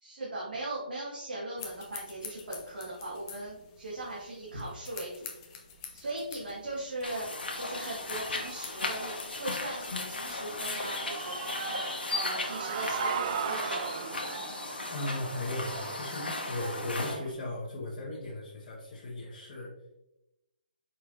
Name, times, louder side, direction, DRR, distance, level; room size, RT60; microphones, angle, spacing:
voice 1, 0.0-5.3 5.9-7.3 7.6-11.3 12.1-14.1, right 2 dB, 70° right, -7 dB, 1.6 m, -39 dB
sound 1, 1.6-10.9, left 7 dB, 25° left, 0.6 m, -48 dB
sound 2, 7.0-17.2, left 3 dB, 75° left, 1.0 m, -36 dB
Human voice / Cheering, 10.7-17.3, right 7 dB, 40° right, 0.4 m, -38 dB
voice 2, 14.9-19.7, left 2 dB, 40° left, -7 dB, 1.2 m, -37 dB
4.9 x 4.3 x 2.5 m, 0.90 s
figure-of-eight pair, 145°, 5 cm